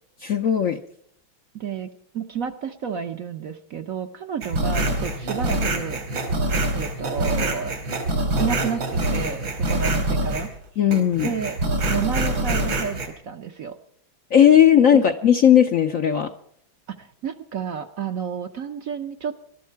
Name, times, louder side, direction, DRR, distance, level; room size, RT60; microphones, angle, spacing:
voice 1, 0.2-0.8 10.8-11.3 14.3-16.3, left 9 dB, 60° left, 7 dB, 0.9 m, -16 dB
voice 2, 1.5-6.0 6.7-7.7 8.4-10.5 11.2-11.6 11.9-13.0 13.2-13.8 14.9-15.0 16.9-19.4, right 7 dB, 60° right, 7 dB, 1.0 m, -30 dB
sound 1, 4.4-10.6 10.9-13.1, right 1 dB, 80° right, 3.4 m, -25 dB
20.5 x 12.5 x 4.6 m, 0.64 s
omnidirectional pair, 2.1 m